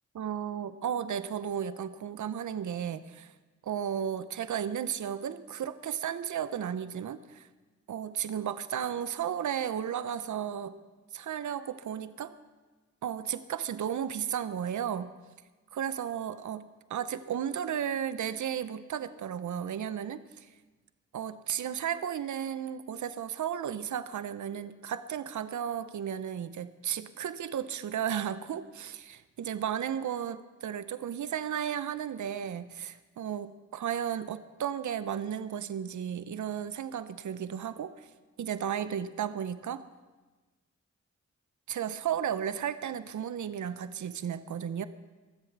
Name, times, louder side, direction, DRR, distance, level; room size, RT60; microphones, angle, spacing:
voice 1, 0.1-3.3 3.6-7.5 7.9-10.7 11.1-12.3 13.0-15.1 15.7-16.6 16.9-20.5 21.1-38.1 38.4-39.8 41.7-44.8, right 9 dB, 85° right, 13 dB, 0.6 m, -34 dB
23.5 x 7.9 x 6.0 m, 1.3 s
cardioid pair, 40°, 29 cm